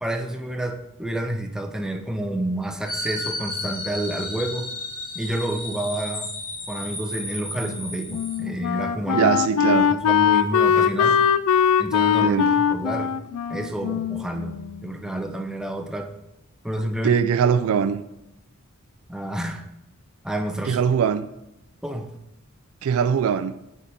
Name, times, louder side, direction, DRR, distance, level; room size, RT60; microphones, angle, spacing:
voice 1, 0.0-4.7 5.1-6.3 6.7-11.2 11.8-13.1 13.5-16.1 16.6-17.2 19.1-19.6 20.2-20.8 21.8-22.1, right 1 dB, 5° right, 0.5 m, -29 dB
sound 1, 2.9-8.4, left 2 dB, 40° left, 2.5 m, -33 dB
Wind instrument woodwind instrument, 7.6-14.9, left 7 dB, 80° left, 0.3 m, -21 dB
voice 2, 9.1-9.9 12.2-12.6 17.0-18.0 20.7-21.3 22.8-23.6, right 7 dB, 65° right, 0.3 m, -21 dB
9.1 x 3.6 x 4.3 m
head